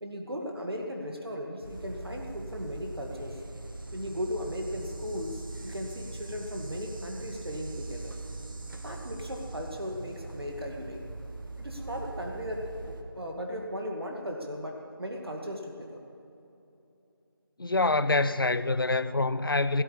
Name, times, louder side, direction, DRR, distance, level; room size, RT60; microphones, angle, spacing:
voice 1, 0.0-3.4 3.9-8.1 8.8-11.0 11.6-16.0, equal, 85° right, 2.3 m, -37 dB
sqirrel bird bugfight, 1.6-13.0, right 3 dB, 60° right, 1.7 m, -41 dB
voice 2, 17.6-19.8, left 2 dB, 70° left, 0.7 m, -26 dB
16.0 x 8.5 x 8.5 m
figure-of-eight pair, 170°, 12 cm